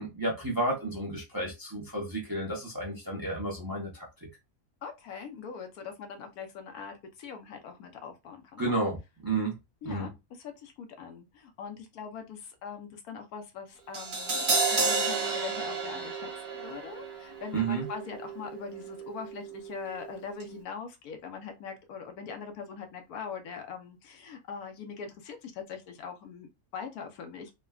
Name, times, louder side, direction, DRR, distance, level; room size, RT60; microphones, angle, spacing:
voice 1, 0.0-4.1 8.6-9.0 9.2-9.5 9.8-10.1 17.5-17.9, right 2 dB, 25° right, 0.5 m, -31 dB
voice 2, 4.8-8.7 9.8-10.1 10.4-27.5, left 6 dB, 85° left, 1.2 m, -42 dB
Crash cymbal, 13.9-20.1 20.4-20.5, right 4 dB, 50° right, 1.0 m, -32 dB
3.4 x 2.2 x 2.3 m
omnidirectional pair, 1.5 m